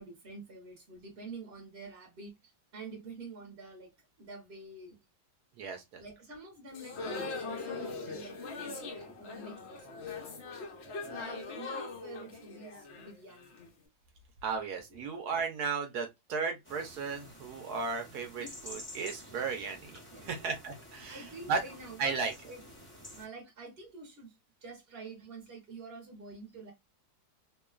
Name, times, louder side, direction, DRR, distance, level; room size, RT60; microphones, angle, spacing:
voice 1, 0.0-2.3 2.7-5.0 6.0-8.4 8.6-10.3 11.1-13.6 14.9-15.0 18.4-18.6 20.1-20.6 21.1-22.6 23.1-24.3 24.6-26.7, right 3 dB, 45° right, 0.8 m, -48 dB
voice 2, 5.6-6.0 11.0-11.2 14.4-21.6 22.0-22.5, right 5 dB, 70° right, 1.0 m, -35 dB
sound 1, 6.7-13.7, left 3 dB, 80° left, 0.6 m, -41 dB
sound 2, 16.6-23.3, equal, 20° left, 0.3 m, -50 dB
3.0 x 2.2 x 2.2 m
omnidirectional pair, 2.1 m